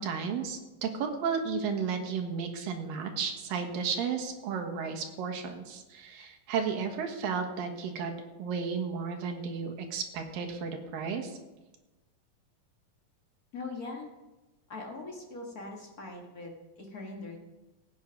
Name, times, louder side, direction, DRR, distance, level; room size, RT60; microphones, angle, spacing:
voice 1, 0.0-8.1 8.4-11.4, right 6 dB, 80° right, 4 dB, 3.1 m, -33 dB
voice 2, 13.5-14.1 14.7-17.4, left 3 dB, 40° left, 0 dB, 1.3 m, -41 dB
17.0 x 9.0 x 5.2 m, 1.1 s
omnidirectional pair, 3.9 m